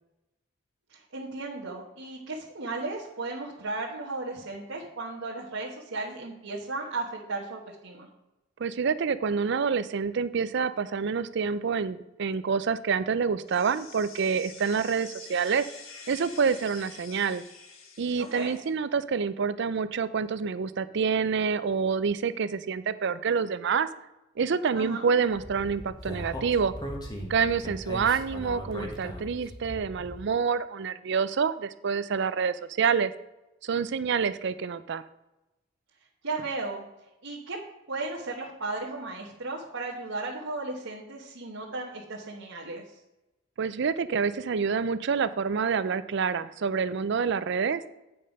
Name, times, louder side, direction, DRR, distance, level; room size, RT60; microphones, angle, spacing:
voice 1, 0.9-8.1 18.2-18.5 24.7-25.0 36.2-36.8 37.2-37.6 37.9-42.8, right 3 dB, 90° right, -4 dB, 1.3 m, -35 dB
voice 2, 8.6-15.7 16.1-17.4 18.0-23.9 24.4-26.7 27.3-33.1 33.6-35.0 43.6-47.8, right 6 dB, 60° right, 15 dB, 0.4 m, -27 dB
sound 1, 13.5-18.7, left 5 dB, 90° left, 1.4 m, -47 dB
Speech, 25.3-30.2, equal, 20° left, 1.3 m, -39 dB
8.7 x 5.4 x 5.2 m, 0.97 s
head